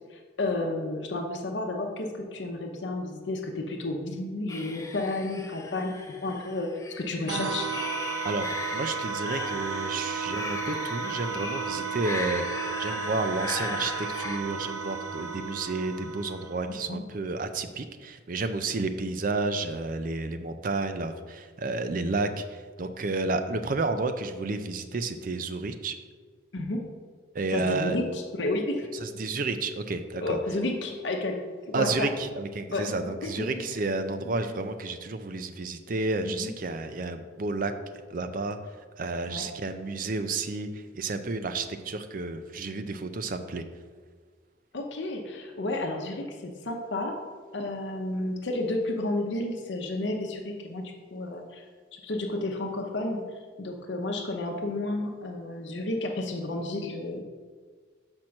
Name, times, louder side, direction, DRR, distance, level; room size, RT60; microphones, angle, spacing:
voice 1, 0.1-5.9 6.2-6.7 7.0-7.7 16.9-17.0 26.5-26.8 27.5-28.9 30.2-31.4 31.7-32.1 32.7-32.9 33.2-33.4 36.2-36.5 39.3-39.5 44.7-47.1 47.5-50.8 51.1-51.6 51.9-53.2 53.6-57.2, left 2 dB, 80° left, 2 dB, 0.8 m, -31 dB
sound 1, 4.5-14.4, left 3 dB, 15° left, 0.4 m, -38 dB
sound 2, 7.3-16.7, right 5 dB, 80° right, 0.8 m, -33 dB
voice 2, 8.2-12.4 12.8-25.9 27.3-28.0 29.0-30.4 31.7-37.7 38.1-38.6 39.0-43.6, right 3 dB, 50° right, 9 dB, 0.5 m, -31 dB
5.9 x 4.4 x 6.3 m, 1.5 s
head